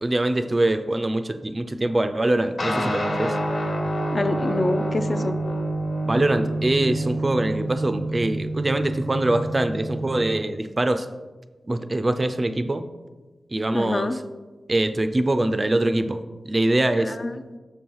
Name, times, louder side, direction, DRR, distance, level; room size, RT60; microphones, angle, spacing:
voice 1, 0.0-3.4 6.0-11.1 11.7-12.8 13.5-14.1 14.7-16.2 16.5-17.2, right 1 dB, 30° right, 9 dB, 0.4 m, -23 dB
sound 1, 2.6-10.4, right 1 dB, 55° left, 1.3 m, -27 dB
voice 2, 4.1-5.4 13.7-14.2 17.0-17.6, left 2 dB, 35° left, 8 dB, 0.5 m, -26 dB
6.7 x 5.5 x 4.6 m, 1.2 s
wide cardioid pair, 90°, 0 cm